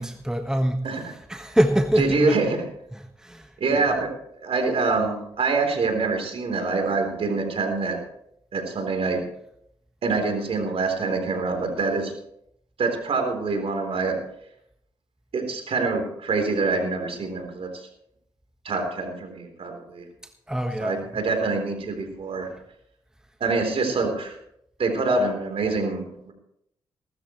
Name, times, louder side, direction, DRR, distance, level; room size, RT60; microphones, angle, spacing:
voice 1, 0.0-2.4 2.9-3.9 20.5-21.2, right 1 dB, 5° right, 1.4 m, -25 dB
voice 2, 2.0-2.6 3.6-4.1 4.4-8.0 8.5-9.2 10.0-12.1 12.8-14.2 15.3-17.9 18.6-20.0 20.8-22.5 23.4-24.4 24.8-26.3, right 3 dB, 60° right, 3.6 m, -25 dB
19.0 x 13.0 x 3.2 m
supercardioid pair, 60°, 11 cm